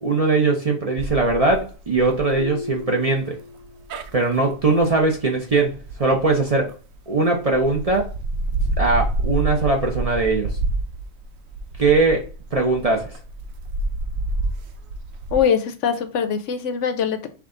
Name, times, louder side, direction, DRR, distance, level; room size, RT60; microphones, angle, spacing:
voice 1, 0.0-3.4 4.1-6.7 7.1-8.1 8.8-10.6 11.8-13.2, right 3 dB, 40° right, 1 dB, 0.5 m, -20 dB
sound 1, 1.0-7.0 7.5-15.4, right 2 dB, 85° right, 1.0 m, -29 dB
Marimba xylophone, 2.3-4.1, left 3 dB, 25° right, 1.1 m, -35 dB
voice 2, 15.3-17.3, left 7 dB, 70° left, 9 dB, 0.9 m, -22 dB
5.9 x 2.3 x 3.7 m, 0.36 s
omnidirectional pair, 1.4 m